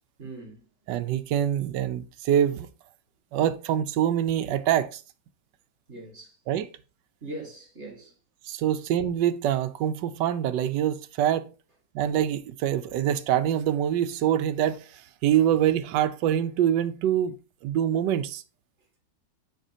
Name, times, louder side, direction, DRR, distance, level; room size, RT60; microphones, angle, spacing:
voice 1, 0.2-0.6 5.9-6.4 7.2-8.2, right 2 dB, 40° right, 2.2 m, -40 dB
voice 2, 0.9-2.7 3.3-5.0 6.5-6.7 8.5-11.5 11.9-17.3 17.6-18.4, right 10 dB, 90° right, 1.3 m, -25 dB
9.2 x 4.0 x 2.8 m
omnidirectional pair, 1.8 m